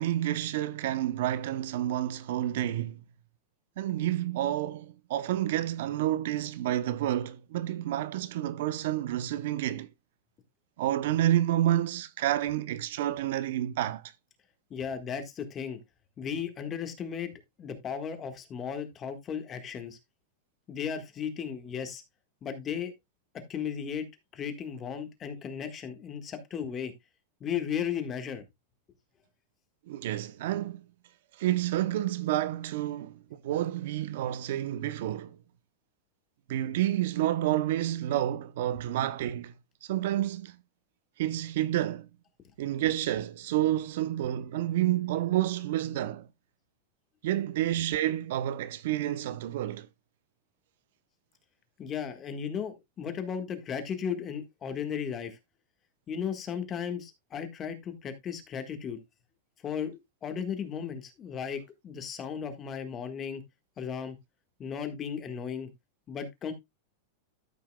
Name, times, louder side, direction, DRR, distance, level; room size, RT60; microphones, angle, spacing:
voice 1, 0.0-3.0 3.8-9.9 10.8-14.1 29.9-30.8 31.4-35.4 36.5-39.5 39.8-40.6 41.2-42.1 42.6-46.3 47.2-49.9, right 13 dB, 65° right, 0.6 m, -29 dB
voice 2, 14.7-15.8 16.2-17.3 17.6-20.0 20.7-22.0 22.4-22.9 23.5-24.0 24.3-26.9 27.4-28.4 51.8-55.3 56.1-59.0 59.6-63.4 63.8-64.2 64.6-65.7 66.1-66.5, left 7 dB, 25° left, 1.5 m, -35 dB
13.5 x 5.6 x 2.2 m
supercardioid pair, 145°, 0 cm